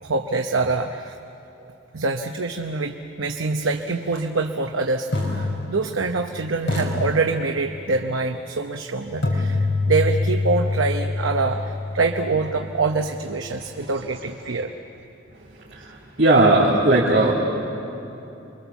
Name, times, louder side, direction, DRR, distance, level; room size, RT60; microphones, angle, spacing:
voice 1, 0.0-1.2 1.6-1.7 1.9-14.7, right 3 dB, 85° right, 4 dB, 0.9 m, -25 dB
sound 1, 4.0-4.2 5.1-6.3 6.7-7.9 9.2-13.1, left 2 dB, 70° left, 4.6 m, -26 dB
voice 2, 16.2-17.3, right 2 dB, 55° right, -6 dB, 3.0 m, -16 dB
28.5 x 23.0 x 7.1 m, 2.9 s
head